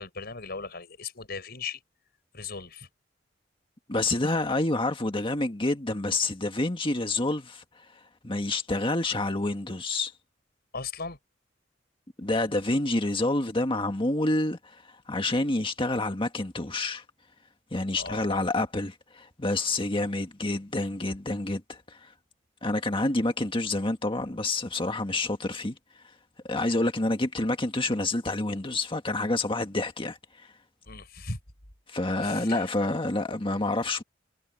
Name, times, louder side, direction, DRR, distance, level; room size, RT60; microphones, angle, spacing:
voice 1, 0.0-1.8 2.3-2.9 10.7-11.2 17.9-18.4 30.9-31.4 32.2-32.7, left 4 dB, 55° left, 6.3 m, -37 dB
voice 2, 3.9-7.6 8.2-10.1 12.2-14.8 15.1-17.0 17.7-22.1 22.6-25.8 26.4-30.5 31.9-34.0, left 2 dB, 30° left, 1.8 m, -28 dB
head